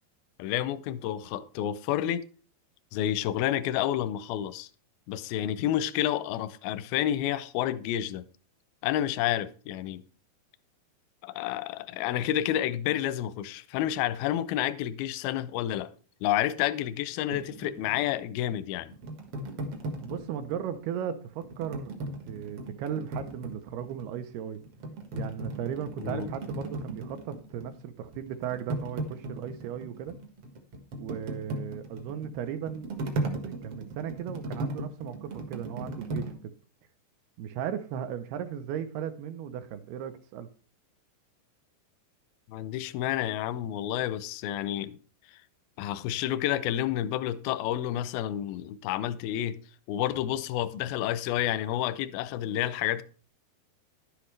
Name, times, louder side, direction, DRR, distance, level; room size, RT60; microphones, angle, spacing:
voice 1, 0.4-2.3 2.9-4.7 5.1-8.2 8.8-10.0 11.2-15.9 16.2-18.9 26.0-26.3 42.5-45.0 45.8-49.6 49.9-53.0, left 12 dB, 85° left, 2.1 m, -30 dB
sound 1, 17.3-20.8 21.4-24.2 24.6-27.8 28.1-36.3, right 2 dB, 60° right, 1.4 m, -37 dB
voice 2, 20.0-21.9 22.3-24.6 25.1-30.2 31.0-36.5 37.4-40.5, right 9 dB, 80° right, 2.5 m, -36 dB
11.0 x 10.0 x 3.2 m
omnidirectional pair, 4.8 m